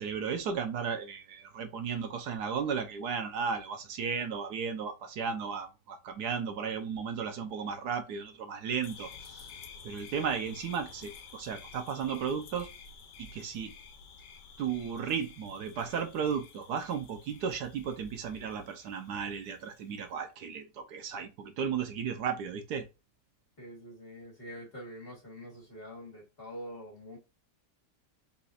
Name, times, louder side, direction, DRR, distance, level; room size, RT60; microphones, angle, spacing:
voice 1, 0.0-9.5 9.8-12.7 13.2-13.7 14.6-22.9, right 6 dB, 75° right, 1.3 m, -35 dB
sound 1, 8.8-20.0, left 6 dB, 85° left, 1.4 m, -51 dB
voice 2, 23.6-27.2, equal, 35° left, 1.6 m, -45 dB
4.2 x 4.1 x 2.5 m
omnidirectional pair, 1.8 m